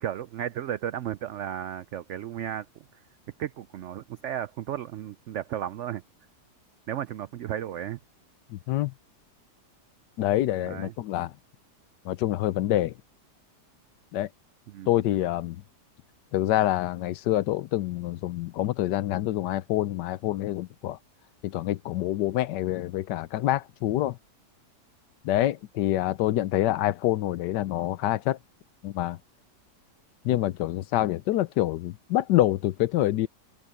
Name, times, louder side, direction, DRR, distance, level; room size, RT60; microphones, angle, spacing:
voice 1, 0.0-2.8 3.4-6.0 6.9-8.0 10.7-10.9 14.7-14.9, right 10 dB, 90° right, 0.6 m, -34 dB
voice 2, 8.5-8.9 10.2-11.3 12.0-12.9 14.1-14.3 14.9-15.6 16.3-21.0 21.4-24.2 25.2-28.4 28.8-29.2 30.2-33.3, left 14 dB, 85° left, 1.3 m, -26 dB
omnidirectional pair, 1.8 m